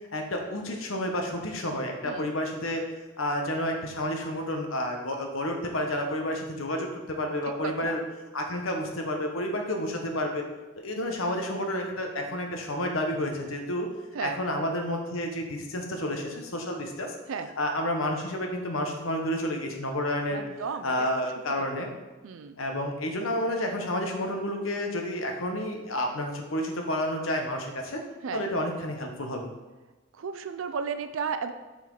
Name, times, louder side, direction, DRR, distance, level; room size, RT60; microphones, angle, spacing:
voice 1, 0.1-2.8 3.2-8.0 8.3-10.5 10.8-13.9 14.2-17.1 17.6-20.4 20.8-21.9 22.6-28.0 28.3-29.5, left 1 dB, 85° left, 3 dB, 1.1 m, -30 dB
voice 2, 7.6-7.9 14.1-14.4 17.3-17.5 20.3-21.1 22.2-22.6 28.2-28.4 30.2-31.5, right 6 dB, 85° right, 9 dB, 0.4 m, -33 dB
7.3 x 4.3 x 3.9 m, 1.2 s
head